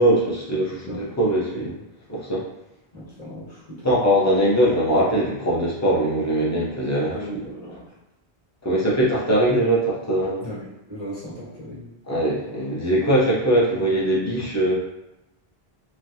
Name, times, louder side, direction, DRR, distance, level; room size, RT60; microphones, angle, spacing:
voice 1, 0.0-1.8 2.1-2.4 3.8-7.1 8.6-10.4 12.1-14.7, right 1 dB, 20° left, -6 dB, 0.6 m, -21 dB
voice 2, 0.8-1.2 2.9-3.9 7.1-8.0 10.4-11.9, equal, 40° left, -8 dB, 1.2 m, -37 dB
3.2 x 2.3 x 2.7 m, 0.93 s
omnidirectional pair, 1.0 m